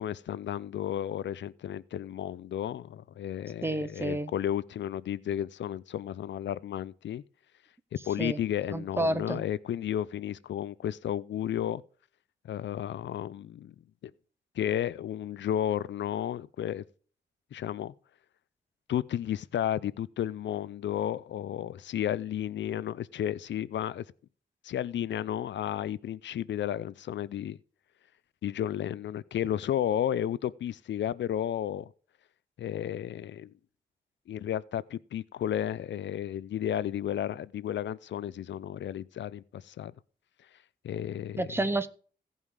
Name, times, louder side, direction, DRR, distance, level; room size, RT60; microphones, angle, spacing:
voice 1, 0.0-7.2 8.0-11.8 12.4-13.7 14.0-14.1 14.6-16.8 17.5-17.9 18.9-24.0 24.6-27.6 28.4-31.9 32.6-33.5 34.3-39.9 40.8-41.5, left 10 dB, 80° left, 0.4 m, -33 dB
voice 2, 3.6-4.3 8.2-8.4 8.7-9.4 41.4-41.9, right 1 dB, 15° right, 0.6 m, -30 dB
16.5 x 5.5 x 4.7 m
wide cardioid pair, 165°, 19 cm